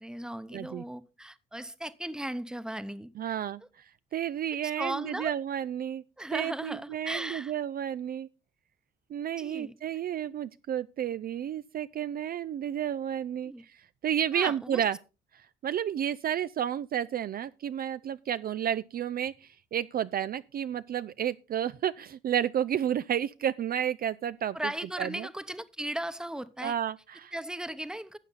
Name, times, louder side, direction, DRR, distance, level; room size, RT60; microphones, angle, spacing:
voice 1, 0.0-3.3 4.8-5.3 6.2-7.5 9.4-9.7 13.4-13.6 14.3-14.8 24.5-26.7 27.3-28.2, right 1 dB, 5° right, 0.9 m, -37 dB
voice 2, 0.5-0.8 3.2-6.0 6.3-8.3 9.1-15.0 15.3-24.6 25.0-25.3 26.6-27.3, right 10 dB, 50° right, 0.4 m, -31 dB
12.0 x 7.9 x 4.0 m
cardioid pair, 90°, 20 cm